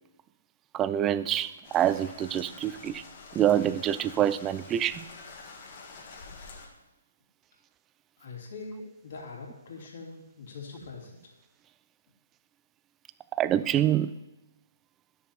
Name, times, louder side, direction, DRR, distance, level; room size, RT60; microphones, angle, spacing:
voice 1, 0.7-3.0 3.3-5.1 13.3-14.1, right 11 dB, 20° right, 15 dB, 0.3 m, -26 dB
sound 1, 1.6-6.7, left 4 dB, 40° left, 1.7 m, -47 dB
voice 2, 8.2-11.2, left 3 dB, 55° left, -2 dB, 2.9 m, -43 dB
11.5 x 6.8 x 4.3 m, 1.0 s
figure-of-eight pair, 135°, 0 cm